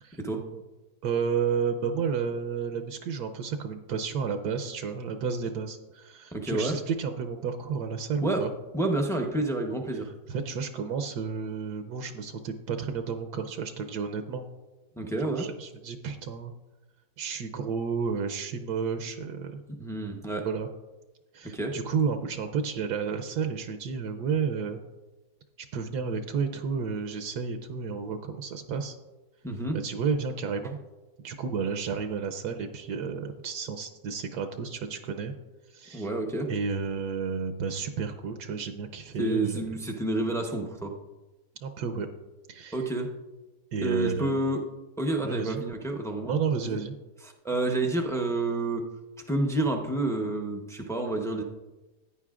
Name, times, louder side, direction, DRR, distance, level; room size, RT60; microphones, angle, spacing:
voice 1, 1.0-8.5 10.3-14.4 15.4-16.5 17.2-19.6 20.4-20.7 21.3-24.8 25.7-29.0 29.7-30.8 31.2-35.3 35.7-36.1 36.5-39.7 41.6-42.1 42.5-42.8 43.7-44.4 45.2-45.6 46.3-46.9, right 6 dB, 75° right, 8 dB, 1.2 m, -31 dB
voice 2, 6.3-6.8 8.2-8.5 8.7-10.1 15.0-15.5 19.7-20.5 21.4-21.8 29.4-29.8 35.9-36.5 39.2-40.9 42.7-43.1 43.8-44.7 45.0-46.3 46.6-46.8 47.2-48.8 49.3-51.4, right 2 dB, 5° left, 3 dB, 0.4 m, -29 dB
15.5 x 9.7 x 2.4 m, 1.1 s
omnidirectional pair, 1.8 m